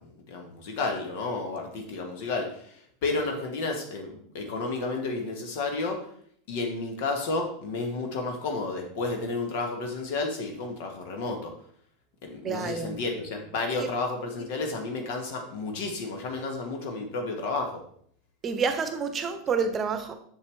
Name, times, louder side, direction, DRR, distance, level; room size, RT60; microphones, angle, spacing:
voice 1, 0.0-6.0 6.5-11.5 12.2-17.8, left 3 dB, 50° left, 3 dB, 1.3 m, -31 dB
voice 2, 12.4-13.0 13.8-13.9 18.4-20.2, right 5 dB, 25° right, 9 dB, 1.0 m, -28 dB
7.2 x 6.6 x 3.3 m, 0.63 s
figure-of-eight pair, 85°, 0 cm